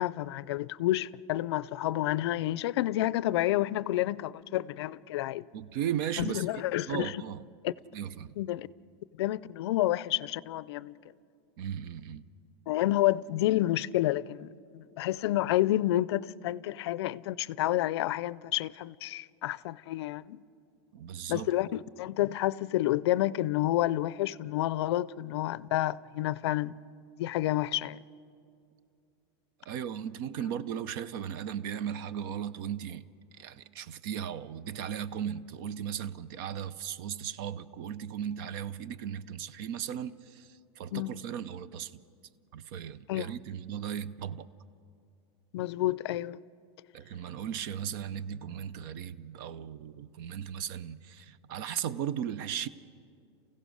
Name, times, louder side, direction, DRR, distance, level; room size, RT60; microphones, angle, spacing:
voice 1, 0.0-5.5 6.2-7.2 7.6-7.7 8.4-8.7 9.2-10.9 12.7-20.4 21.3-26.7 27.2-28.0 40.9-41.1 43.1-43.3 45.5-46.4, left 15 dB, 70° left, 0.5 m, -29 dB
voice 2, 5.5-6.5 6.9-7.4 7.9-8.4 11.6-12.2 20.9-21.5 29.7-33.1 33.3-40.5 40.8-41.9 42.5-44.5 46.9-52.7, right 9 dB, 55° right, 0.6 m, -36 dB
29.0 x 16.0 x 6.4 m
supercardioid pair, 160°, 14 cm